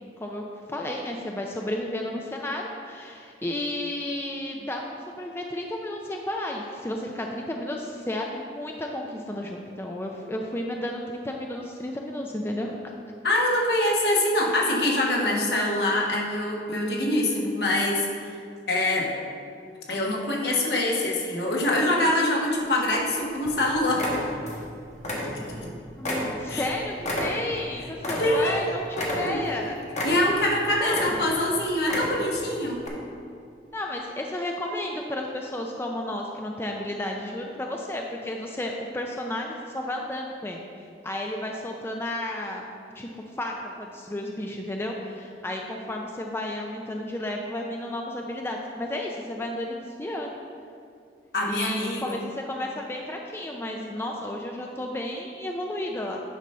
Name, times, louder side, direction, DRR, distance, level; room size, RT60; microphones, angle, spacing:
voice 1, 0.2-4.8 5.2-12.7 25.5-25.7 26.0-29.8 30.8-31.2 33.7-40.6 41.0-42.6 43.0-43.1 43.4-50.4 51.5-56.2, left 1 dB, 15° left, 1 dB, 0.4 m, -32 dB
voice 2, 13.2-18.0 18.7-19.1 19.9-24.1 25.6-25.7 26.5-26.7 28.2-28.7 29.1-29.4 30.0-32.8 51.3-52.2, left 1 dB, 65° left, -2 dB, 1.4 m, -24 dB
sound 1, 22.4-23.1 23.4-23.6 23.9-24.7 25.0-25.7 26.0-28.6 28.9-29.6 29.9-30.5 30.8-31.4 31.8-32.4 32.8-32.9, left 1 dB, 40° left, 1.2 m, -31 dB
9.2 x 4.0 x 5.5 m, 2.4 s
head